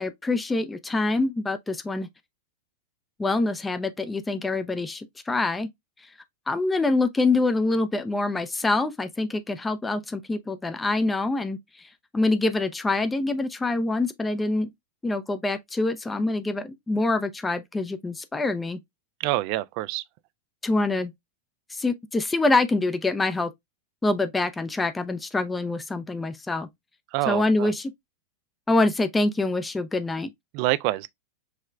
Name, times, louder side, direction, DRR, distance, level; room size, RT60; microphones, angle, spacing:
voice 1, 0.0-2.1 3.2-5.7 6.5-11.6 12.1-14.7 15.0-18.8 20.6-21.1 21.7-23.5 24.0-26.7 27.3-27.9 28.7-30.3, left 2 dB, 10° left, 0.5 m, -25 dB
voice 2, 19.2-20.0 27.1-27.7 30.5-31.1, right 17 dB, 45° right, 0.3 m, -26 dB
4.8 x 3.2 x 2.3 m
figure-of-eight pair, 90°, 0 cm